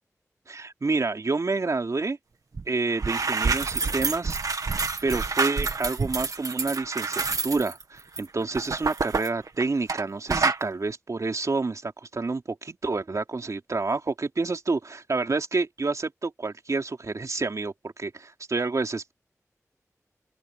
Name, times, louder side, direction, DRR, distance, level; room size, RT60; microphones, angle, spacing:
voice 1, 0.5-2.2 2.7-4.4 5.0-19.1, right 3 dB, 65° right, 3.1 m, -28 dB
sound 1, 2.5-2.7 2.9-10.0 10.3-10.6, right 4 dB, 85° right, 1.9 m, -27 dB
open air
wide cardioid pair, 55°, 6 cm